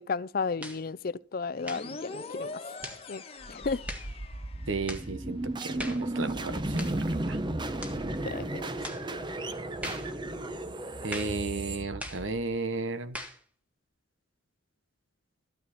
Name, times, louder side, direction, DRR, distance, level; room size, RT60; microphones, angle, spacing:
voice 1, 0.0-2.6 3.1-3.2 3.5-3.8 8.3-8.7, left 4 dB, 45° left, 0.5 m, -33 dB
sound 1, 0.6-0.9 1.6-1.9 2.8-3.1 3.9-4.1 4.9-5.1 5.8-6.1 6.8-7.0 7.8-8.0 8.8-9.1 9.8-10.1 11.1-11.4 12.0-12.3 13.1-13.4, equal, 5° right, 1.6 m, -40 dB
sound 2, 1.6-5.1, left 3 dB, 30° left, 1.4 m, -42 dB
sound 3, 3.4-12.5, right 1 dB, 25° right, 0.8 m, -34 dB
voice 2, 4.7-7.4 11.0-13.2, right 3 dB, 75° right, 1.2 m, -34 dB
13.5 x 9.5 x 4.2 m
head